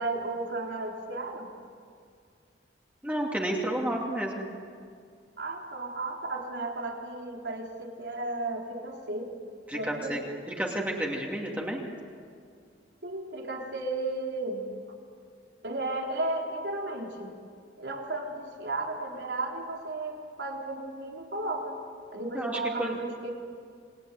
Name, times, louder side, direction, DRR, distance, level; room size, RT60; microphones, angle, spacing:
voice 1, 0.0-1.5 5.4-9.3 9.7-10.2 13.0-14.6 15.6-17.3 17.8-21.8 22.1-23.3, right 2 dB, 75° right, 0 dB, 3.9 m, -34 dB
voice 2, 3.0-4.5 9.7-10.2 10.5-11.9 22.3-23.0, right 1 dB, 10° right, -1 dB, 2.6 m, -31 dB
28.0 x 20.0 x 9.3 m, 2.2 s
head